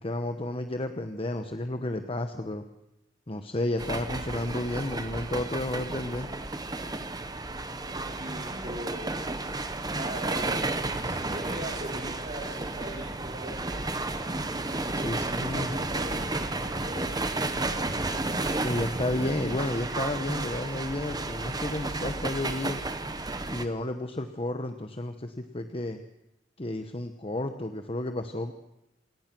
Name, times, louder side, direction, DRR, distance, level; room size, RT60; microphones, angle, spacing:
voice 1, 0.0-2.7 3.3-6.3 14.9-15.7 18.6-22.8 23.5-26.0 26.6-28.5, left 1 dB, 30° left, 7 dB, 1.1 m, -32 dB
sound 1, 3.8-23.7, right 2 dB, 20° right, 1.3 m, -32 dB
voice 2, 7.8-9.2 9.8-10.7 11.0-13.9 14.9-18.1, right 1 dB, 40° right, -1 dB, 3.4 m, -41 dB
27.5 x 18.5 x 6.2 m, 0.87 s
head